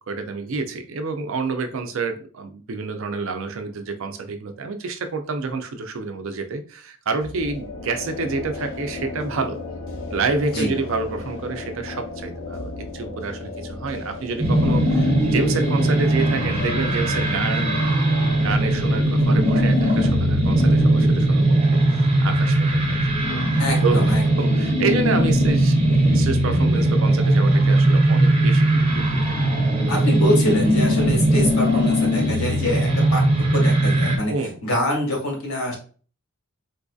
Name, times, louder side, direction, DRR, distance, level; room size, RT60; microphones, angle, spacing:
voice 1, 0.1-9.6 10.1-17.8 18.4-23.0 23.3-25.7 26.1-29.4 34.3-34.6, right 4 dB, 65° right, 7 dB, 0.5 m, -28 dB
sound 1, 7.2-20.9, left 3 dB, 65° left, 0.8 m, -36 dB
sound 2, 14.4-34.2, right 1 dB, 25° right, 0.7 m, -19 dB
voice 2, 23.6-24.2 29.9-34.3 34.6-35.8, left 1 dB, 85° left, 0 dB, 1.4 m, -25 dB
3.9 x 2.6 x 2.3 m, 0.40 s
head